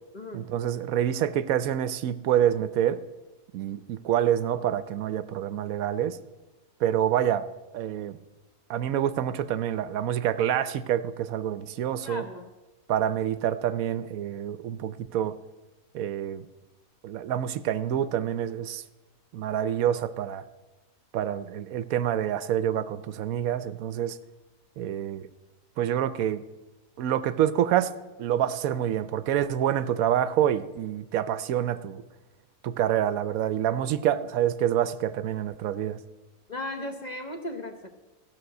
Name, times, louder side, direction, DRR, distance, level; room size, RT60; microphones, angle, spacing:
voice 1, 0.3-3.0 3.5-6.2 6.8-7.4 7.7-8.2 8.7-12.3 12.9-15.4 15.9-16.5 17.0-18.8 19.3-20.4 21.1-24.2 24.8-25.3 25.8-26.4 27.0-27.9 28.2-32.0 32.6-36.0, right 10 dB, 75° right, 15 dB, 1.0 m, -27 dB
voice 2, 12.0-12.5 36.5-37.9, left 1 dB, 35° left, 5 dB, 0.8 m, -36 dB
14.5 x 5.9 x 7.8 m, 1.1 s
omnidirectional pair, 1.5 m